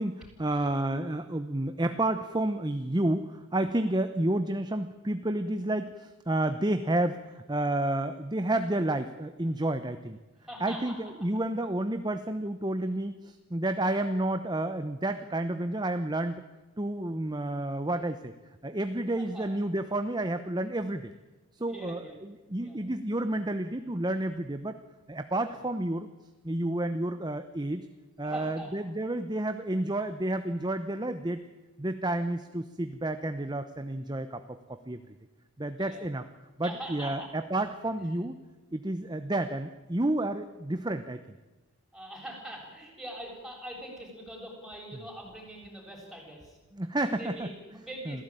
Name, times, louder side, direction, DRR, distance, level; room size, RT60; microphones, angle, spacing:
voice 1, 0.0-10.2 10.6-16.4 16.8-18.3 18.6-21.1 21.5-24.8 25.1-26.1 26.4-27.9 28.2-31.4 31.8-35.0 35.6-36.3 36.6-38.4 38.7-41.2 46.7-47.5 47.7-48.2, right 1 dB, 20° right, 9 dB, 0.9 m, -30 dB
voice 2, 10.5-11.0 19.2-19.5 21.7-22.2 22.6-22.8 25.4-25.6 28.2-28.9 35.8-36.0 36.6-37.3 38.1-38.2 41.9-46.6 47.1-48.2, equal, ahead, -1 dB, 7.8 m, -43 dB
27.0 x 16.5 x 9.2 m, 1.2 s
head